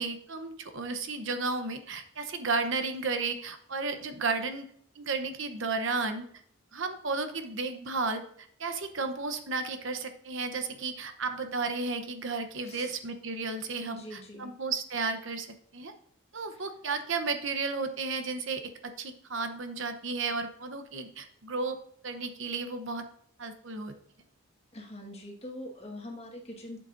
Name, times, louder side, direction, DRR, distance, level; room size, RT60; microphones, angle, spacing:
voice 1, 0.0-4.7 4.9-6.3 6.7-8.2 8.6-15.5 15.7-15.9 16.3-21.8 22.0-23.0 23.4-23.9, right 4 dB, 60° right, 8 dB, 0.9 m, -33 dB
voice 2, 13.8-14.5 16.5-16.6 24.7-26.8, left 1 dB, 30° left, 0 dB, 1.5 m, -43 dB
11.5 x 7.6 x 2.6 m, 0.63 s
head